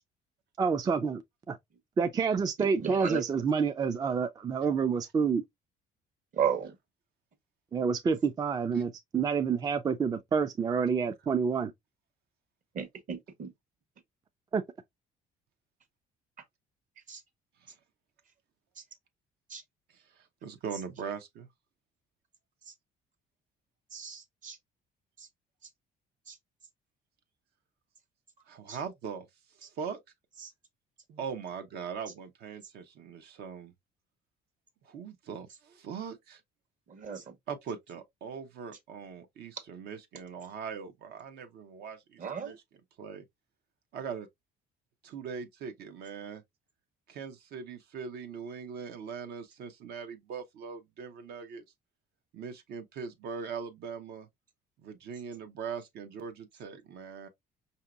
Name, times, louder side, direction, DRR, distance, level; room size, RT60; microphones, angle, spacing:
voice 1, 0.6-1.2 1.5-1.6 2.0-5.4 7.7-11.7 14.5-14.6, right 5 dB, 25° right, 0.3 m, -28 dB
voice 2, 2.6-3.2 6.4-6.7 12.7-13.5 17.1-17.2 19.5-19.6 23.9-24.6 26.3-26.4 28.7-28.8 36.9-37.2 42.2-42.5, right 7 dB, 50° right, 1.1 m, -34 dB
voice 3, 19.9-21.5 28.5-29.3 29.6-30.0 31.1-33.7 34.8-36.4 37.5-42.6 43.0-43.2 43.9-44.3 45.0-46.4 47.1-51.6 52.3-54.3 54.8-57.3, right 6 dB, 70° right, 0.8 m, -41 dB
5.1 x 2.7 x 2.3 m
cardioid pair, 110°, 17 cm